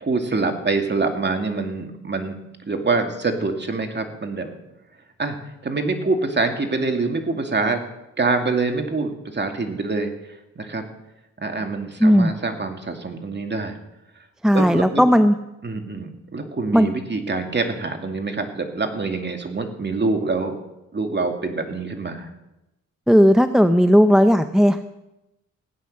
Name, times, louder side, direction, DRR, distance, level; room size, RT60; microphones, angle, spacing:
voice 1, 0.0-2.3 2.7-4.5 5.2-7.8 8.2-10.8 11.4-13.8 14.5-15.0 15.6-20.6 20.9-22.3, right 3 dB, 35° right, 5 dB, 2.4 m, -25 dB
voice 2, 14.4-15.3 16.7-16.9 23.1-24.8, equal, ahead, 9 dB, 0.6 m, -15 dB
16.5 x 9.4 x 6.6 m, 0.94 s
cardioid pair, 75°, 31 cm